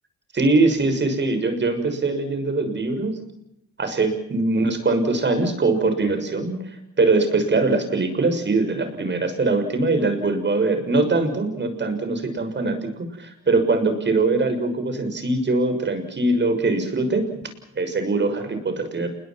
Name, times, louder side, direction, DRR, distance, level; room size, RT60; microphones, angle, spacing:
voice 1, 0.3-3.2 3.8-6.6 7.0-17.4 17.8-19.1, right 3 dB, 35° right, 8 dB, 6.6 m, -22 dB
28.5 x 21.5 x 6.1 m, 0.81 s
cardioid pair, 90°, 30 cm